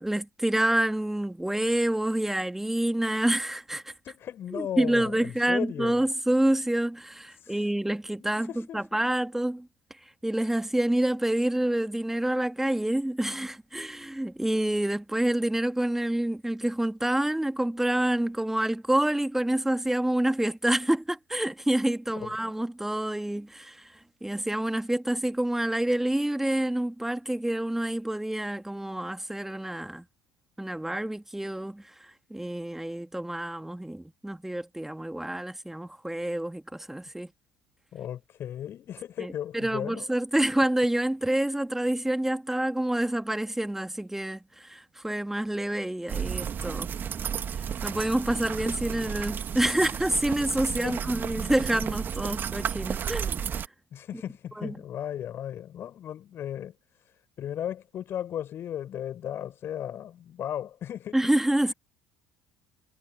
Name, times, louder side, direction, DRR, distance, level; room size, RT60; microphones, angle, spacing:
voice 1, 0.0-3.9 4.5-9.7 10.2-23.9 24.2-30.0 30.6-31.8 32.3-37.3 39.2-46.9 47.8-53.4 54.6-54.7 61.1-61.7, right 1 dB, 5° right, 2.7 m, -27 dB
voice 2, 4.0-6.0 7.4-7.6 8.2-9.0 22.1-22.5 37.9-40.1 50.8-51.2 52.4-52.6 53.9-56.7 57.0-61.2 61.6-61.7, left 10 dB, 45° left, 6.1 m, -36 dB
sound 1, 46.1-53.7, right 8 dB, 35° right, 2.3 m, -32 dB
figure-of-eight pair, 60°, 6 cm